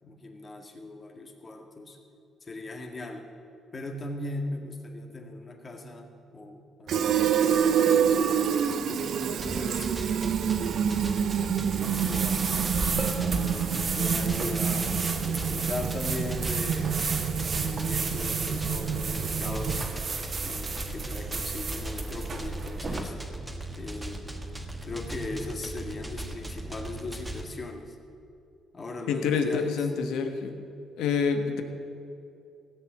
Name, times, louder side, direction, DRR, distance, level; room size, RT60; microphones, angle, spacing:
voice 1, 0.0-2.0 2.4-3.2 3.7-8.2 8.7-10.2 10.6-11.2 11.7-12.5 13.1-16.9 17.4-19.9 20.4-23.2 23.7-24.3 24.8-28.0 28.7-29.9, left 2 dB, 35° left, 3 dB, 2.0 m, -39 dB
Fill (with liquid), 6.9-20.0, right 8 dB, 70° right, 0.7 m, -27 dB
sound 1, 9.4-27.4, right 1 dB, 10° right, 1.7 m, -38 dB
sound 2, 11.8-23.0, right 4 dB, 40° right, 1.7 m, -33 dB
voice 2, 29.1-30.6 31.0-31.6, left 5 dB, 90° left, 6 dB, 1.3 m, -27 dB
17.0 x 7.9 x 7.5 m, 2.6 s
cardioid pair, 90°, 0 cm